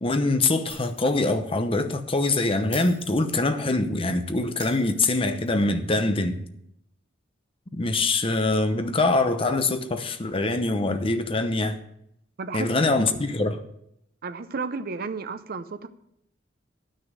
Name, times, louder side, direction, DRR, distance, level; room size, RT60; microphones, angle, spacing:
voice 1, 0.0-6.4 7.7-11.8 12.5-13.6, left 2 dB, 30° left, 0.8 m, -24 dB
Shatter, 0.7-1.3 1.6-1.7 2.7-3.7 4.6-5.6, equal, 5° left, 3.1 m, -42 dB
voice 2, 12.4-13.2 14.2-15.9, right 4 dB, 55° right, 0.6 m, -33 dB
10.0 x 6.4 x 6.3 m
head